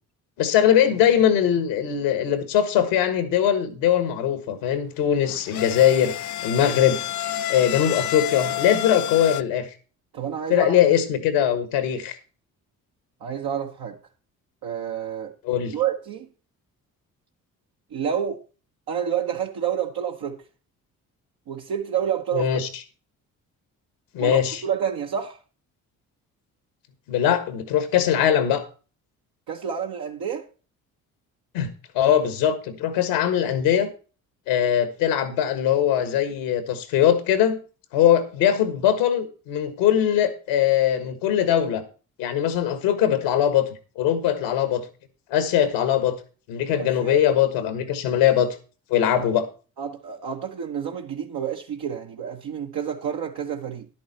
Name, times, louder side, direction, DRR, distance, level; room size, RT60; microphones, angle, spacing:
voice 1, 0.4-6.1 6.4-7.0 7.5-9.7 10.5-12.2 15.4-15.7 22.3-22.7 24.1-24.6 27.1-28.6 31.5-31.7 31.9-33.9 34.5-37.6 37.9-41.8 42.2-43.7 43.9-44.8 45.3-46.1 46.5-48.5 48.9-49.5, left 10 dB, 85° left, 1.5 m, -21 dB
sound 1, 5.1-9.4, left 12 dB, 45° left, 0.6 m, -30 dB
voice 2, 10.1-10.8 13.2-14.0 14.6-16.3 17.9-18.4 18.9-20.4 21.5-22.7 24.2-25.4 29.5-30.5 46.8-47.2 49.0-49.1 49.8-53.9, right 8 dB, 65° right, 1.1 m, -29 dB
10.5 x 8.5 x 4.2 m
hypercardioid pair, 50°, 41 cm